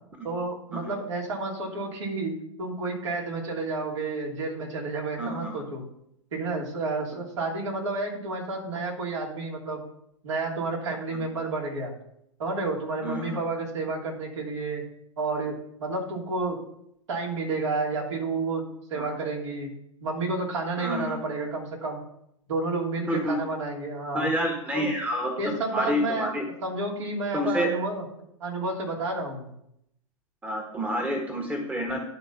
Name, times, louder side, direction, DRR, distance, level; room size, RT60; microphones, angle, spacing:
voice 1, 0.2-5.8 6.3-9.8 10.2-11.9 12.4-14.9 15.2-16.6 17.1-19.7 20.0-22.0 22.5-24.3 24.7-24.9 25.4-26.3 26.6-28.0 28.4-29.5, right 3 dB, 60° right, -1 dB, 2.9 m, -30 dB
voice 2, 5.2-5.5 11.1-11.2 13.0-13.4 18.9-19.1 20.8-21.2 23.1-23.4 24.1-26.4 27.3-27.7 30.4-32.0, equal, 10° right, 2 dB, 1.5 m, -28 dB
11.0 x 4.1 x 5.8 m, 0.74 s
figure-of-eight pair, 105°, 17 cm